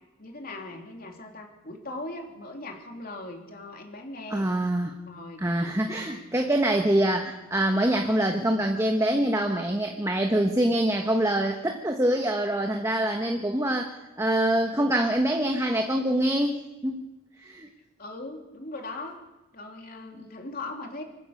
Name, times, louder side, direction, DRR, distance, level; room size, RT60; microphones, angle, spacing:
voice 1, 0.2-4.5 5.1-5.4 5.9-6.2 18.0-19.2 19.5-21.0, left 2 dB, 50° left, 2 dB, 3.1 m, -39 dB
voice 2, 4.3-5.0 5.4-17.1 17.4-17.7, right 1 dB, 15° right, 3 dB, 1.3 m, -25 dB
25.5 x 15.5 x 6.6 m, 1.0 s
head